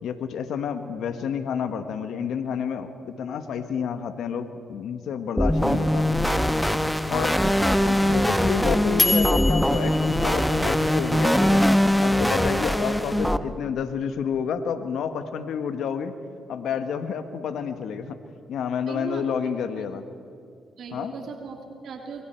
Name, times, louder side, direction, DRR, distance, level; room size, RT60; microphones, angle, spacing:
voice 1, 0.0-6.0 7.1-7.4 7.9-11.7 12.0-16.1 16.5-18.2 18.5-20.1 20.9-21.1, left 7 dB, 75° left, 9 dB, 1.3 m, -29 dB
sound 1, 5.4-13.4, left 1 dB, 5° left, 1.1 m, -22 dB
sound 2, 8.0-11.2, left 3 dB, 30° left, 2.5 m, -27 dB
voice 2, 12.6-12.9 18.9-19.2 19.8-19.9 20.8-22.2, right 5 dB, 70° right, 2 dB, 2.9 m, -38 dB
27.5 x 23.0 x 4.5 m, 2.4 s
supercardioid pair, 60°, 0 cm